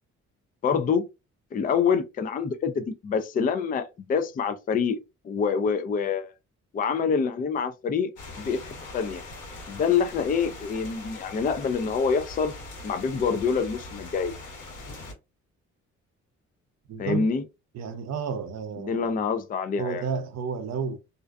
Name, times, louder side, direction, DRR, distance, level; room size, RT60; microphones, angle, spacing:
voice 1, 0.6-1.1 1.5-5.0 5.2-6.3 6.7-8.1 8.4-9.2 9.7-12.5 12.8-14.3 17.0-17.4 18.8-20.0, left 6 dB, 30° left, 0.4 m, -26 dB
sound 1, 8.2-15.1, left 2 dB, 75° left, 1.1 m, -41 dB
voice 2, 16.9-17.3 17.7-19.2 19.8-21.0, right 6 dB, 60° right, 0.6 m, -31 dB
2.5 x 2.3 x 2.2 m
cardioid pair, 90°, 30 cm